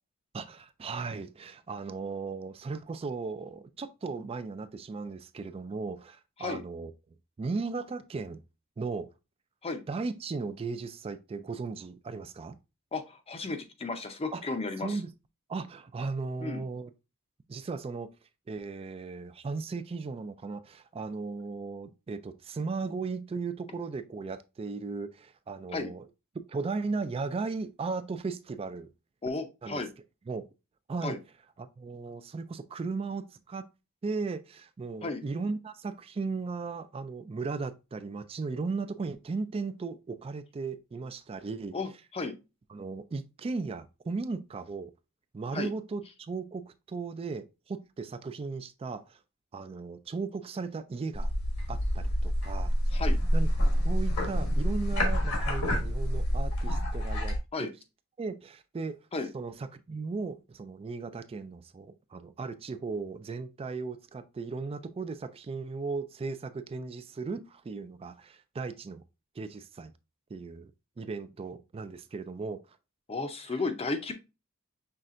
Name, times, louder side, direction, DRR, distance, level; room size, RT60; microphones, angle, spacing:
voice 1, 0.3-6.9 7.4-8.4 8.8-9.1 9.9-12.6 14.3-14.4 14.8-15.1 15.5-16.9 17.5-18.1 18.5-26.0 26.5-28.9 29.6-29.8 30.3-30.5 30.9-31.2 31.6-33.7 34.0-41.8 42.7-44.9 45.3-49.2 49.5-51.3 51.7-52.7 53.3-53.5 53.8-57.7 58.2-59.0 59.3-69.0 69.4-69.9 70.3-70.7 71.0-72.6, right 4 dB, 25° right, 0.3 m, -36 dB
voice 2, 12.9-15.0 16.4-16.6 25.7-25.9 29.2-29.9 31.0-31.2 35.0-35.2 41.7-42.3 45.5-45.7 52.9-53.2 57.5-57.7 59.1-59.3 73.1-74.1, left 3 dB, 25° left, 0.6 m, -34 dB
sound 1, 51.1-57.4, equal, 75° left, 1.4 m, -27 dB
5.6 x 3.2 x 2.5 m
head